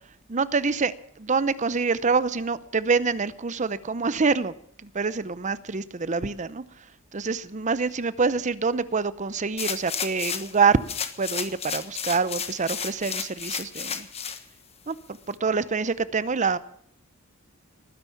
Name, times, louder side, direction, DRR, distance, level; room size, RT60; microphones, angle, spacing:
voice 1, 0.3-4.5 4.8-6.6 7.1-10.8 11.2-14.1 14.9-16.6, right 4 dB, 35° right, 16 dB, 0.7 m, -26 dB
sound 1, 9.6-10.6 10.9-14.4 14.9-15.0, left 7 dB, 30° left, 1.3 m, -32 dB
19.5 x 10.5 x 7.1 m, 0.66 s
head